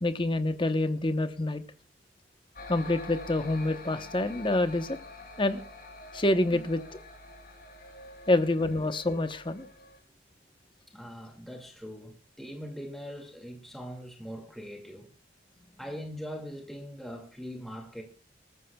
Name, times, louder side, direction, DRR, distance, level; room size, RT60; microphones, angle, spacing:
voice 1, 0.0-1.6 2.7-5.0 5.4-5.6 6.1-6.8 8.3-9.7, left 2 dB, 25° left, 0.9 m, -27 dB
sound 1, 2.5-10.0, left 2 dB, 50° left, 6.5 m, -47 dB
voice 2, 10.9-15.1 15.8-18.0, equal, ahead, 2.2 m, -41 dB
25.0 x 14.0 x 2.3 m
head